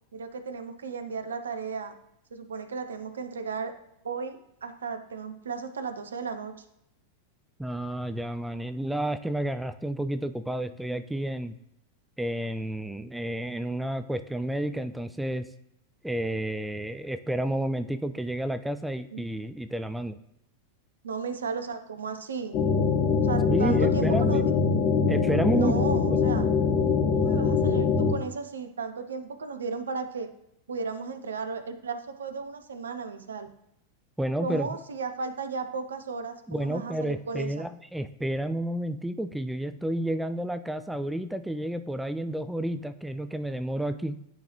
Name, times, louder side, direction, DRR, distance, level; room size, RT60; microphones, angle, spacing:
voice 1, 0.1-1.9 2.3-3.7 4.0-6.5 19.1-19.4 21.0-22.6 23.2-24.5 25.5-26.5 26.8-30.3 30.7-33.5 34.4-37.7, right 5 dB, 70° right, 9 dB, 0.6 m, -35 dB
voice 2, 7.6-11.6 12.2-15.5 16.0-20.2 23.5-24.4 25.1-25.7 26.1-26.2 34.2-34.7 36.5-44.2, right 1 dB, 5° right, 10 dB, 0.4 m, -30 dB
sound 1, 22.5-28.1, left 5 dB, 40° left, 0.9 m, -23 dB
10.0 x 3.8 x 3.0 m, 0.79 s
figure-of-eight pair, 90°, 0 cm